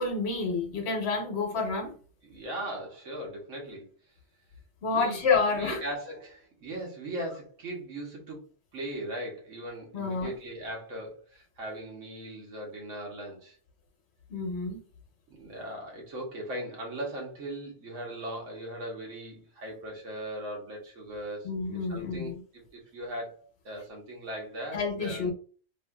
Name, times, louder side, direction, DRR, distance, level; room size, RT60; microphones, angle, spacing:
voice 1, 0.0-1.9 4.8-5.8 9.9-10.3 14.3-14.8 21.4-22.4 24.7-25.3, left 4 dB, 60° left, 2 dB, 1.1 m, -29 dB
voice 2, 2.2-3.9 4.9-5.2 5.5-8.4 8.7-13.6 15.3-21.6 21.9-25.3, right 1 dB, 80° right, -1 dB, 1.4 m, -39 dB
3.2 x 2.6 x 2.3 m, 0.40 s
omnidirectional pair, 1.3 m